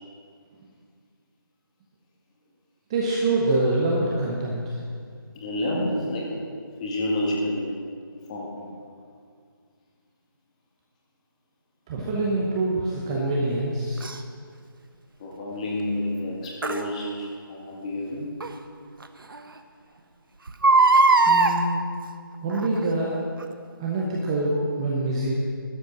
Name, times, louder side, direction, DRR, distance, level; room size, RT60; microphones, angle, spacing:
voice 1, 2.9-4.8 11.9-14.1 21.3-21.9 22.4-23.3 23.8-25.3, right 2 dB, 15° right, -4 dB, 0.8 m, -25 dB
voice 2, 5.3-6.3 6.8-7.7 8.3-8.7 15.2-18.3 25.2-25.3, left 1 dB, 20° left, -2 dB, 1.7 m, -29 dB
Crying sobbing, 14.0-14.2 16.6-16.8 18.4-18.5 19.0-19.1 19.3-19.4 20.5-21.5 22.5-22.8 23.4-23.5, right 3 dB, 65° right, 1.0 m, -18 dB
12.5 x 10.0 x 6.1 m, 2.2 s
figure-of-eight pair, 170°, 12 cm